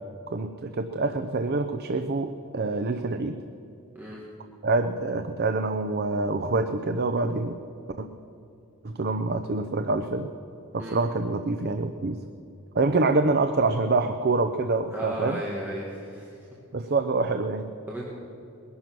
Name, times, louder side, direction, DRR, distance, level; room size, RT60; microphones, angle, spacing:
voice 1, 0.3-3.4 4.6-7.6 8.0-8.1 8.8-10.3 10.7-12.2 12.7-15.4 16.7-17.7, right 3 dB, 45° right, 8 dB, 0.6 m, -26 dB
voice 2, 14.9-16.3 17.9-18.0, right 1 dB, 10° right, -5 dB, 1.9 m, -34 dB
20.5 x 11.0 x 6.1 m, 2.8 s
head